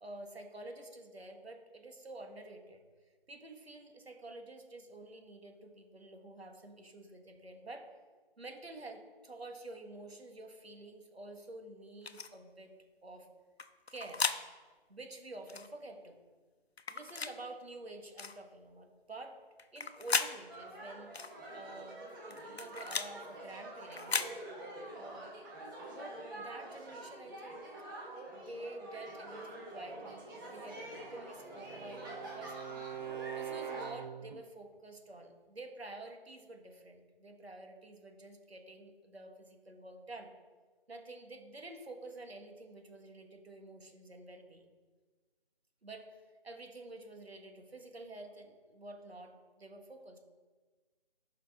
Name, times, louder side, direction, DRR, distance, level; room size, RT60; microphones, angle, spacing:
voice 1, 0.0-2.8 3.3-7.9 8.4-12.7 13.0-13.3 13.9-14.3 14.9-16.2 16.9-19.4 19.7-24.3 24.9-25.3 25.9-27.7 28.3-32.7 33.3-40.3 40.9-44.6 45.8-50.2, right 2 dB, 85° right, 4 dB, 1.7 m, -49 dB
sound 1, 12.0-12.3 13.6-14.4 15.5-15.7 16.8-17.3 18.2-18.4 19.6-20.3 21.1-21.3 22.3-23.1 23.9-24.3, left 5 dB, 90° left, 0.8 m, -35 dB
sound 2, 20.5-33.9, right 1 dB, 20° right, 1.6 m, -47 dB
Bowed string instrument, 30.8-34.4, right 9 dB, 50° right, 0.4 m, -44 dB
11.5 x 5.7 x 3.7 m, 1.4 s
figure-of-eight pair, 160°, 30 cm